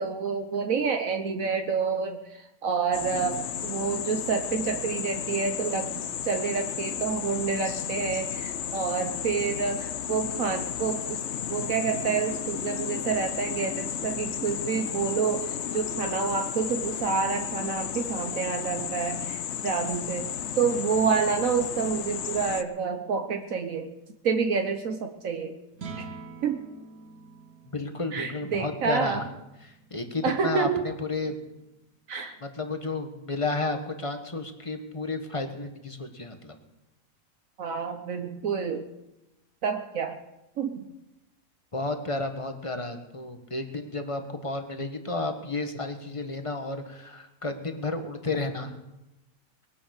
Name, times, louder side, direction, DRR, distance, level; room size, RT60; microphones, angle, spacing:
voice 1, 0.0-11.2 11.5-23.9 24.2-25.6 26.0-26.1 26.4-26.6 28.1-29.2 30.2-30.8 32.1-32.4 37.6-38.9 39.6-40.2 40.6-40.8, right 5 dB, 70° right, 6 dB, 1.4 m, -28 dB
sound 1, 2.9-22.6, left 9 dB, 60° left, 0.9 m, -33 dB
sound 2, 25.7-32.1, right 4 dB, 90° right, 2.6 m, -47 dB
voice 2, 27.6-29.2 29.6-31.5 32.4-36.6 41.7-48.7, left 2 dB, 25° left, 6 dB, 1.5 m, -32 dB
21.0 x 10.0 x 6.6 m, 0.93 s
omnidirectional pair, 1.5 m